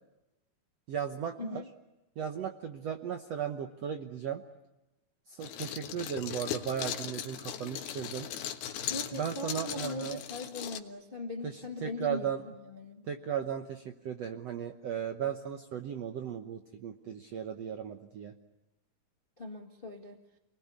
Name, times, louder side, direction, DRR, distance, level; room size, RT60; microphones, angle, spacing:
voice 1, 0.9-1.6 2.2-4.4 5.3-8.3 9.1-10.2 11.4-12.4 13.1-18.3, right 8 dB, 70° right, 6 dB, 1.6 m, -36 dB
sound 1, 5.4-10.8, left 10 dB, 75° left, 3.2 m, -38 dB
voice 2, 8.9-13.1 19.4-20.2, left 2 dB, 30° left, 4 dB, 0.9 m, -40 dB
29.0 x 20.5 x 9.7 m, 1.0 s
omnidirectional pair, 4.4 m